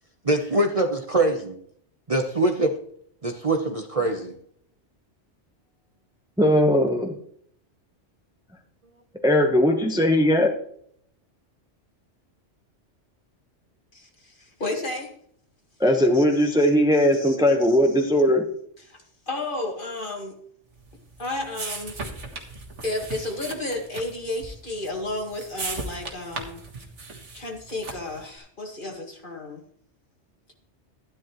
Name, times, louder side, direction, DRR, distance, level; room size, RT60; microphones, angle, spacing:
voice 1, 0.3-1.6 2.1-2.8 3.2-4.4, right 2 dB, 35° right, 3 dB, 0.9 m, -23 dB
voice 2, 6.4-7.1 9.2-10.5 15.8-18.5, equal, 5° right, 3 dB, 1.0 m, -19 dB
voice 3, 13.9-15.1 16.1-18.1 18.8-20.4 21.2-22.1 22.8-26.6 27.3-29.6, left 2 dB, 45° left, 2 dB, 2.1 m, -33 dB
sound 1, 20.8-28.3, right 3 dB, 90° right, 2.0 m, -37 dB
13.0 x 10.5 x 3.1 m, 0.64 s
omnidirectional pair, 1.2 m